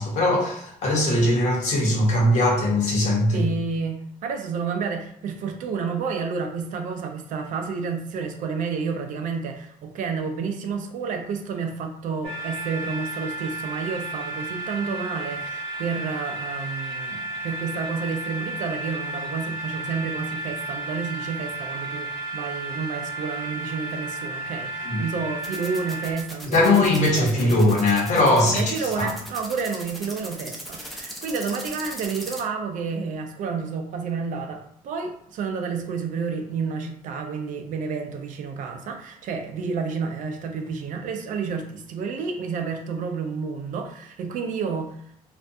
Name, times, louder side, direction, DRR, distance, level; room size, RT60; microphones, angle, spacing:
voice 1, 0.0-3.4 24.8-25.0 26.5-29.1, left 1 dB, 60° left, -2 dB, 0.9 m, -20 dB
voice 2, 3.3-27.6 28.4-45.0, right 5 dB, 65° right, 5 dB, 0.4 m, -30 dB
sound 1, 12.2-26.1, right 2 dB, 40° right, 0.9 m, -33 dB
sound 2, 25.4-32.4, equal, ahead, 0.5 m, -38 dB
2.5 x 2.2 x 2.6 m, 0.69 s
cardioid pair, 115°, 14 cm